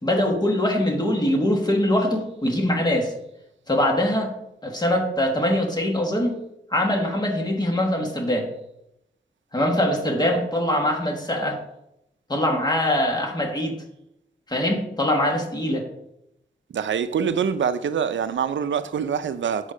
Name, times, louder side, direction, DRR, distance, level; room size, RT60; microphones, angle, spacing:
voice 1, 0.0-3.1 3.7-4.3 4.6-6.4 6.7-8.5 9.5-11.6 12.3-13.7 14.5-15.9, left 1 dB, 20° left, 1.5 m, -23 dB
voice 2, 16.7-19.7, right 7 dB, 85° right, 0.5 m, -25 dB
8.2 x 5.5 x 5.0 m
wide cardioid pair, 165°, 19 cm